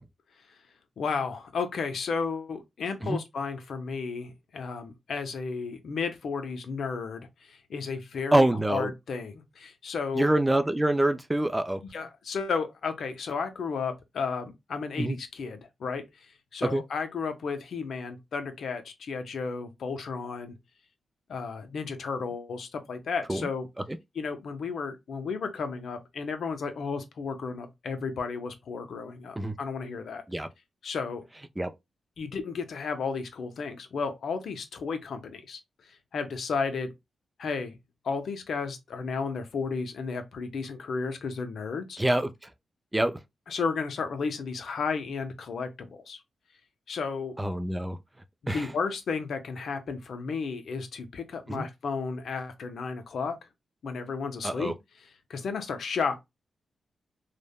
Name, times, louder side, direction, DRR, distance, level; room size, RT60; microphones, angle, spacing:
voice 1, 1.0-10.3 11.9-16.0 16.5-20.5 21.3-23.7 24.1-30.2 30.8-31.2 32.2-35.6 36.1-36.9 37.4-37.8 38.0-42.0 43.5-46.2 46.9-47.4 48.4-53.4 53.8-54.7 55.3-56.2, left 5 dB, 75° left, 0.6 m, -33 dB
voice 2, 8.3-8.9 10.1-11.8 15.0-15.2 16.6-16.8 23.3-23.5 29.4-29.5 30.3-30.5 31.6-31.7 42.0-42.3 42.9-43.2 47.4-48.0 48.5-48.7 51.5-51.7 54.4-54.7, right 1 dB, 15° right, 0.4 m, -25 dB
3.3 x 2.1 x 2.2 m
cardioid pair, 65°, 0 cm